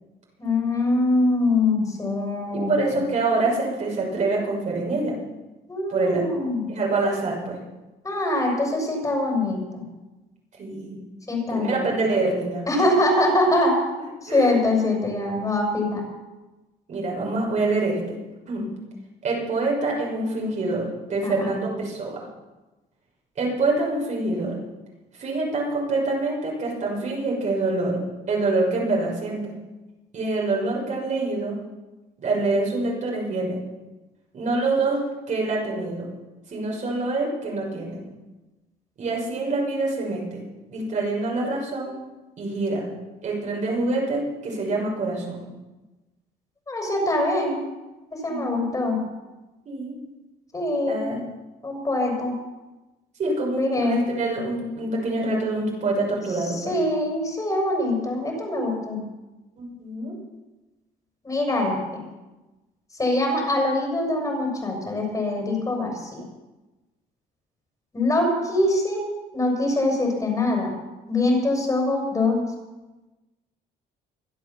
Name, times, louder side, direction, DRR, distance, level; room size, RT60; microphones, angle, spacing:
voice 1, 0.4-3.0 5.7-6.7 8.0-9.8 11.3-11.8 12.7-13.8 14.2-16.0 21.2-21.5 46.7-47.6 48.1-49.0 50.5-51.1 51.6-52.4 53.6-54.0 56.5-59.0 61.2-62.1 63.0-66.2 67.9-69.0 69.3-70.8 71.1-72.4, left 2 dB, 20° left, 0 dB, 6.4 m, -23 dB
voice 2, 2.7-5.1 5.9-6.2 6.7-7.6 10.6-11.0 11.5-12.6 14.3-14.5 16.9-18.0 18.5-18.7 19.2-22.3 23.4-24.5 25.2-28.0 28.3-29.5 30.1-31.5 32.2-33.6 34.3-35.0 35.3-36.1 36.5-38.0 39.0-40.4 40.7-42.0 42.4-42.9 43.2-45.5 48.3-48.7 49.7-49.9 50.9-51.2 53.2-56.8 59.6-60.2, right 2 dB, 45° right, -2 dB, 6.1 m, -25 dB
24.5 x 8.1 x 7.2 m, 1.1 s
cardioid pair, 110°, 17 cm